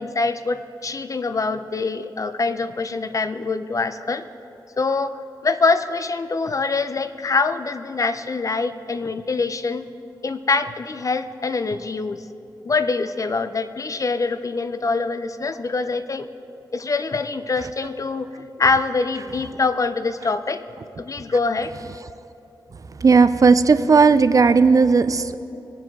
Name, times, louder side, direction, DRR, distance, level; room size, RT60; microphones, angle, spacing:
voice 1, 0.0-4.2 4.8-9.8 10.2-12.2 12.6-16.3 16.7-18.3 18.6-20.6 21.0-21.7, left 4 dB, 40° left, 11 dB, 0.6 m, -24 dB
voice 2, 23.0-25.4, right 4 dB, 45° right, 12 dB, 0.5 m, -15 dB
21.5 x 7.6 x 3.6 m, 2.8 s
cardioid pair, 65°, 8 cm